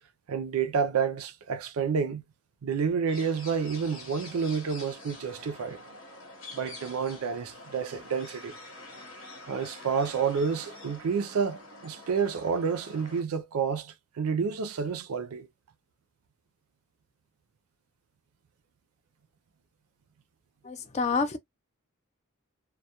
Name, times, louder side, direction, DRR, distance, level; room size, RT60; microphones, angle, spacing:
voice 1, 0.3-2.2 2.6-5.8 6.5-8.6 9.5-15.5, right 6 dB, 85° right, 0.4 m, -29 dB
sound 1, 3.1-13.2, left 2 dB, 65° left, 1.0 m, -46 dB
voice 2, 20.6-21.4, left 4 dB, 30° left, 0.4 m, -28 dB
2.2 x 2.0 x 2.7 m
head